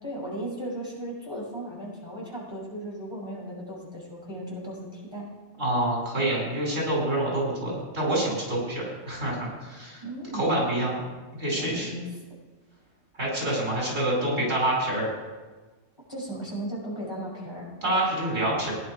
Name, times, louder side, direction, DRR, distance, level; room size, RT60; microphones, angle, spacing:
voice 1, 0.0-5.3 10.0-10.6 11.5-12.0 16.1-17.7, right 1 dB, 20° left, -5 dB, 5.9 m, -36 dB
voice 2, 5.6-10.0 10.3-11.0 11.4-11.9 13.2-15.1 17.8-18.7, right 1 dB, 80° right, -3 dB, 5.7 m, -27 dB
17.0 x 10.5 x 4.9 m, 1.3 s
omnidirectional pair, 1.3 m